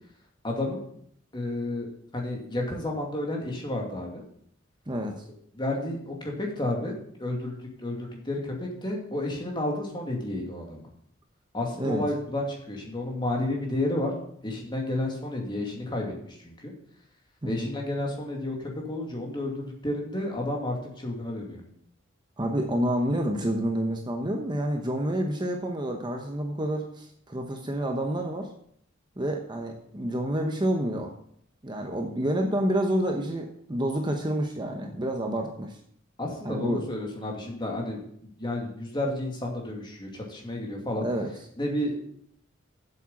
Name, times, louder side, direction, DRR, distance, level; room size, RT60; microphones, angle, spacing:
voice 1, 0.4-0.8 1.3-1.9 2.1-4.2 5.5-10.9 11.5-14.1 14.4-16.7 17.4-21.6 36.2-41.1 41.6-41.9, left 1 dB, 25° left, 0 dB, 2.4 m, -31 dB
voice 2, 4.9-5.2 11.8-12.0 17.4-17.7 22.4-28.5 29.2-31.1 31.6-35.8 36.4-36.8 41.0-41.3, right 1 dB, 20° right, 3 dB, 0.9 m, -28 dB
7.9 x 7.6 x 7.2 m, 0.68 s
head